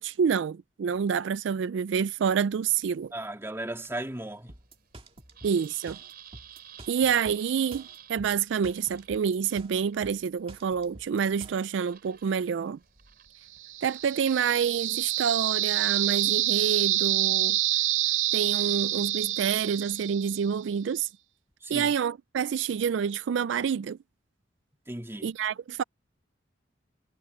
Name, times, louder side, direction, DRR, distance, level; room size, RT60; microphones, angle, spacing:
voice 1, 0.0-3.1 5.4-6.0 6.9-12.8 13.8-17.6 18.3-21.1 21.7-24.0 25.2-25.8, right 7 dB, 70° right, 0.3 m, -28 dB
sound 1, 3.0-14.9, right 10 dB, 50° right, 4.3 m, -53 dB
voice 2, 3.1-4.6 21.6-21.9 24.9-25.3, right 1 dB, 15° right, 2.5 m, -36 dB
sound 2, 4.5-11.7, right 2 dB, 30° right, 2.1 m, -48 dB
sound 3, 13.6-20.6, right 14 dB, 85° right, 0.7 m, -27 dB
head